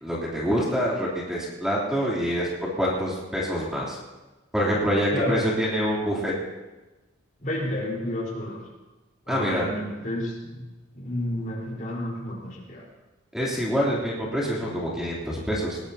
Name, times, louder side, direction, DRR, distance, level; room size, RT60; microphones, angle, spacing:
voice 1, 0.0-4.0 4.5-6.3 9.3-9.7 13.3-15.8, equal, 5° right, -6 dB, 3.3 m, -26 dB
voice 2, 7.4-8.6 9.3-10.6 10.9-12.8, left 1 dB, 40° left, -3 dB, 4.4 m, -30 dB
20.5 x 20.0 x 2.9 m, 1.1 s
head